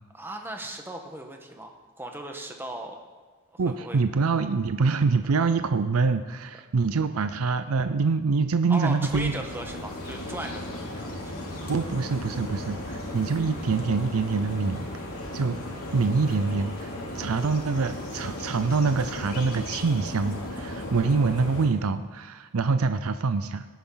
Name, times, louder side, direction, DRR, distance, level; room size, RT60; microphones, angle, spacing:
voice 1, 0.1-3.0 3.5-4.0 8.7-11.3, right 1 dB, 10° right, 3 dB, 1.3 m, -37 dB
voice 2, 3.6-9.4 11.7-14.9 15.3-15.6 15.9-23.7, right 4 dB, 80° right, 10 dB, 0.5 m, -25 dB
sound 1, 9.0-21.7, left 1 dB, 80° left, 2.7 m, -36 dB
18.0 x 10.0 x 3.9 m, 1.5 s
head